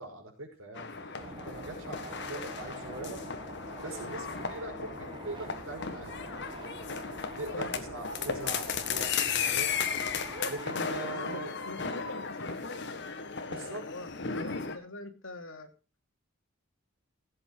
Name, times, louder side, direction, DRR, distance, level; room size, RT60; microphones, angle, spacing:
voice 1, 0.0-3.2 3.8-6.1 7.4-9.7 10.4-11.5 13.4-13.8, right 2 dB, 75° right, 2 dB, 5.5 m, -42 dB
sound 1, 0.8-14.8, left 6 dB, 55° left, 1.6 m, -35 dB
sound 2, 1.2-10.6, right 2 dB, 20° right, 0.9 m, -46 dB
voice 2, 11.2-12.8 13.5-15.7, left 2 dB, 75° left, 6 dB, 2.7 m, -44 dB
16.0 x 8.4 x 4.7 m, 0.33 s
head